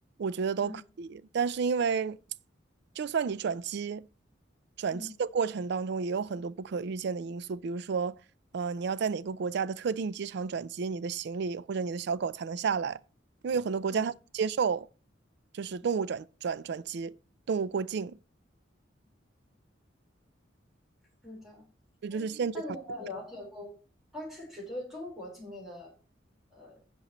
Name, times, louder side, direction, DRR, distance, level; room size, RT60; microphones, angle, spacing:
voice 1, 0.2-0.7 1.0-2.2 3.0-4.0 4.8-8.2 8.5-13.0 13.4-14.9 15.5-17.1 17.5-18.2 22.0-22.5, right 5 dB, 65° right, 0.4 m, -31 dB
voice 2, 21.2-21.7 22.1-22.2 22.5-23.7 24.1-25.9 26.5-26.8, left 1 dB, ahead, 4.3 m, -42 dB
16.0 x 5.3 x 3.0 m
head